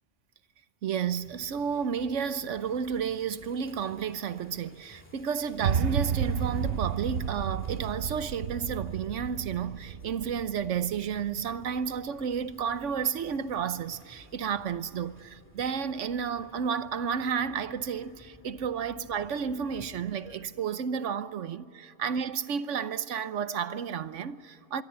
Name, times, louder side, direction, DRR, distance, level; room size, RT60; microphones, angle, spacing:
voice 1, 0.8-24.8, right 7 dB, 90° right, 1.2 m, -32 dB
sound 1, 1.0-20.4, equal, 10° left, 2.4 m, -55 dB
sound 2, 5.6-11.8, right 7 dB, 60° right, 1.0 m, -32 dB
25.5 x 22.5 x 9.9 m
omnidirectional pair, 1.2 m